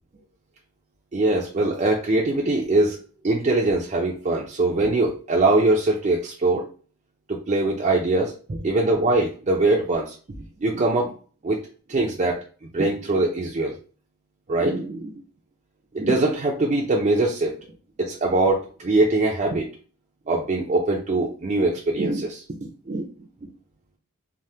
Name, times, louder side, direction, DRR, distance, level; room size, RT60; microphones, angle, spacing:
voice 1, 1.1-3.0 3.2-6.7 7.3-10.2 10.6-11.1 11.4-11.6 11.9-12.4 12.7-13.7 14.5-15.2 15.9-17.6 18.0-19.7 20.3-22.4 22.9-23.1, right 2 dB, 30° right, -2 dB, 0.4 m, -22 dB
3.3 x 2.1 x 2.7 m, 0.38 s
head